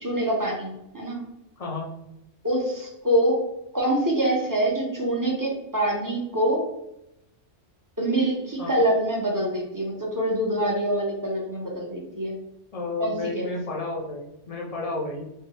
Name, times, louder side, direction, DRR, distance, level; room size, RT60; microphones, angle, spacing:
voice 1, 0.0-1.2 2.4-3.4 3.7-6.6 8.0-12.3 13.0-13.5, right 1 dB, 20° right, -2 dB, 0.8 m, -25 dB
voice 2, 1.6-1.9 8.6-8.8 12.7-15.2, left 3 dB, 35° left, -1 dB, 0.7 m, -31 dB
4.5 x 2.6 x 3.1 m, 0.87 s
omnidirectional pair, 1.2 m